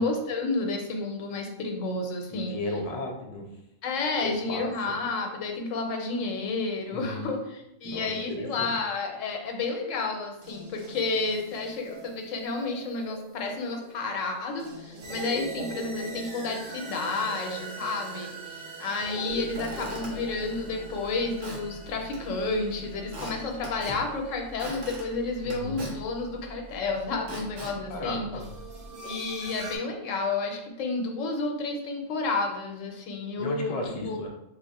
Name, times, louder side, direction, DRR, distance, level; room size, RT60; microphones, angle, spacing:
voice 1, 0.0-2.6 3.8-28.3 29.0-33.7 34.0-34.2, left 3 dB, 80° left, 3 dB, 1.0 m, -31 dB
voice 2, 2.3-3.4 4.2-4.7 6.9-7.3 7.8-8.7 25.4-25.9 27.9-28.4 33.4-34.3, left 2 dB, 50° left, 0 dB, 0.5 m, -35 dB
sound 1, 10.4-26.5 28.4-29.8, right 2 dB, 85° right, 1.1 m, -42 dB
Squeak / Wood, 19.3-28.9, right 1 dB, 55° right, 1.1 m, -43 dB
3.0 x 2.1 x 4.0 m, 0.84 s
omnidirectional pair, 1.3 m